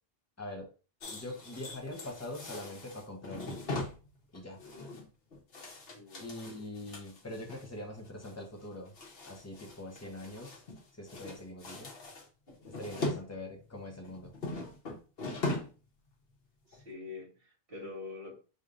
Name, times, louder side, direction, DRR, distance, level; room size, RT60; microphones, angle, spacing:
voice 1, 0.4-0.7 1.1-3.9 4.3-4.6 6.2-8.9 9.2-10.6 10.9-11.9 12.6-14.3, left 1 dB, 15° left, 0 dB, 1.0 m, -43 dB
sound 1, 1.0-7.7 8.0-8.3 8.6-10.8 11.1-13.2 13.6-15.8 16.1-16.3 16.7-16.8, left 2 dB, 70° left, 1.3 m, -40 dB
voice 2, 5.9-6.3 16.7-18.3, left 4 dB, 65° right, -3 dB, 2.0 m, -45 dB
5.2 x 3.1 x 2.6 m, 0.35 s
omnidirectional pair, 1.0 m